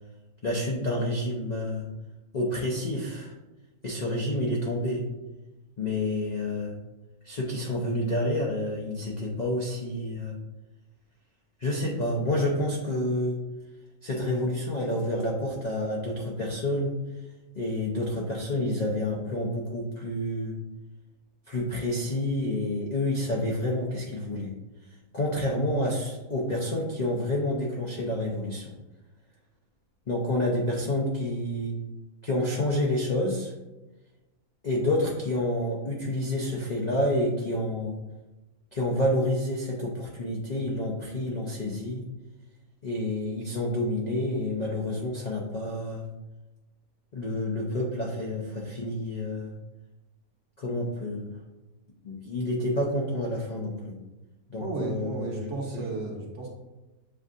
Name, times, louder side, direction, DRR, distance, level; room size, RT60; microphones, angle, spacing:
voice 1, 0.4-1.9 2.3-3.3 3.8-5.1 5.8-6.8 7.2-10.4 11.6-13.4 14.0-17.0 17.6-20.6 21.5-24.5 25.1-28.7 30.1-31.8 32.2-33.5 34.6-38.0 38.7-42.0 42.8-46.0 47.1-49.6 50.6-51.4 52.0-54.0 54.5-55.8, left 1 dB, 65° left, -3 dB, 0.4 m, -29 dB
voice 2, 54.6-56.5, right 3 dB, 55° right, -1 dB, 1.2 m, -33 dB
7.5 x 2.7 x 2.5 m, 1.1 s
omnidirectional pair, 1.6 m